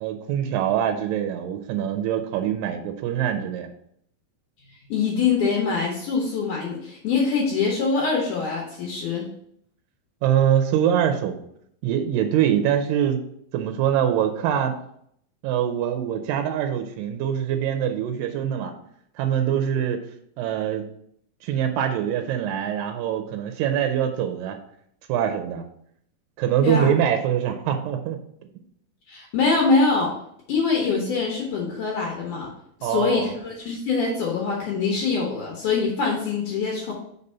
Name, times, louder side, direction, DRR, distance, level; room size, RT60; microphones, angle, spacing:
voice 1, 0.0-3.7 10.2-11.4 11.8-13.2 13.5-14.7 15.4-18.7 19.2-20.0 20.4-20.9 21.4-24.6 25.1-25.6 26.4-28.2 32.8-33.3, right 9 dB, 80° right, 6 dB, 2.1 m, -24 dB
voice 2, 4.9-9.3 26.6-26.9 29.1-30.2 30.5-32.5 32.8-36.9, left 4 dB, 70° left, -2 dB, 2.3 m, -24 dB
5.3 x 4.0 x 5.5 m, 0.69 s
omnidirectional pair, 4.3 m